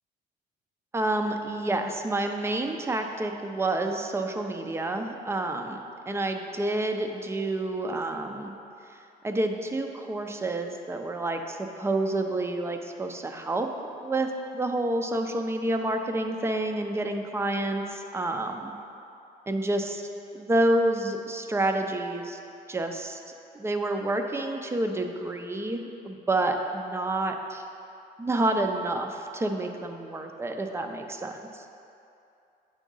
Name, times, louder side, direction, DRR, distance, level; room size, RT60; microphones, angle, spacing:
voice 1, 0.9-5.8 6.1-8.5 9.2-13.7 14.0-18.7 19.5-20.1 20.3-22.4 22.7-23.2 23.5-27.6 28.2-31.6, right 2 dB, 15° right, 4 dB, 0.5 m, -29 dB
9.0 x 3.7 x 5.4 m, 2.7 s
cardioid pair, 110°, 17 cm